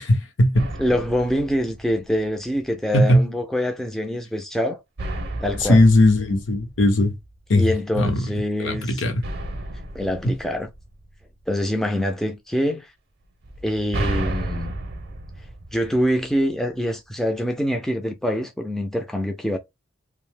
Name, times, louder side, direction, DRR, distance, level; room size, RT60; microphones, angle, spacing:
voice 1, 0.0-0.7 2.9-3.2 5.7-7.2 7.5-7.6 7.9-8.2 8.6-9.2, left 1 dB, 70° left, 0.8 m, -18 dB
sound 1, 0.5-2.4 5.0-7.4 9.2-11.5 13.4-16.5, right 1 dB, 55° right, 0.6 m, -33 dB
voice 2, 0.8-4.8 5.4-5.8 7.5-9.0 9.9-10.7 11.5-12.9 13.6-14.7 15.7-19.6, equal, ahead, 0.3 m, -25 dB
2.6 x 2.0 x 3.3 m
head